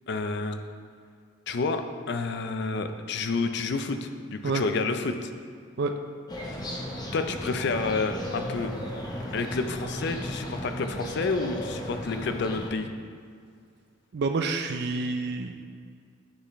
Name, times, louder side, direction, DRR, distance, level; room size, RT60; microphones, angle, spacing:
voice 1, 0.1-0.6 1.5-5.3 7.1-8.7 9.3-12.9, left 4 dB, 60° left, 8 dB, 0.5 m, -29 dB
sound 1, 6.3-12.7, equal, 20° left, 0.7 m, -35 dB
voice 2, 14.1-15.6, right 3 dB, 55° right, 5 dB, 0.4 m, -28 dB
8.0 x 6.6 x 3.1 m, 2.2 s
head